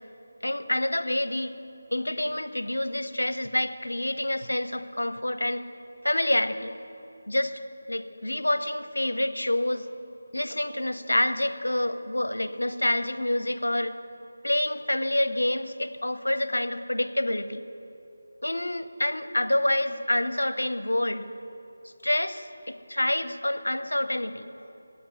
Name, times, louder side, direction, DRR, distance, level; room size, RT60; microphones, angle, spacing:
voice 1, 0.4-1.6 1.9-5.6 6.0-6.7 7.3-7.6 7.9-9.9 10.3-14.0 14.4-17.6 18.4-21.3 22.0-24.5, left 1 dB, 80° left, 12 dB, 0.7 m, -27 dB
9.5 x 8.7 x 9.3 m, 2.9 s
figure-of-eight pair, 160°, 0 cm